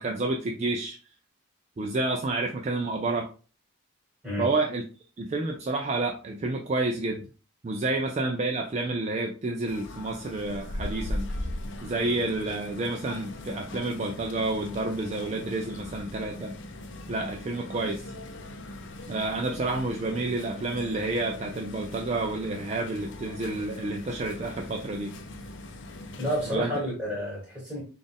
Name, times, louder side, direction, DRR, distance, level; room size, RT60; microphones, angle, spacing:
voice 1, 0.0-1.0 1.8-3.3 4.4-4.8 5.2-7.2 7.6-11.3 11.8-16.5 17.1-18.1 19.1-25.1 26.5-26.7, right 2 dB, 30° right, 0.3 m, -29 dB
sound 1, 9.6-26.6, left 1 dB, 55° left, 0.5 m, -39 dB
voice 2, 26.2-27.8, equal, 5° right, 2.0 m, -30 dB
4.1 x 2.5 x 3.4 m
head